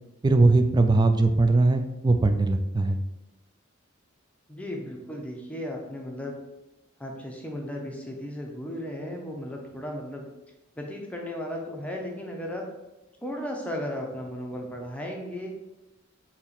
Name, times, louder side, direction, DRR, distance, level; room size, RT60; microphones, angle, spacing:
voice 1, 0.2-3.0, right 2 dB, 20° right, 8 dB, 0.3 m, -20 dB
voice 2, 4.5-6.3 7.0-10.3 10.8-12.6 13.2-15.5, left 1 dB, 5° left, 0 dB, 0.7 m, -35 dB
4.3 x 2.9 x 4.1 m, 0.97 s
head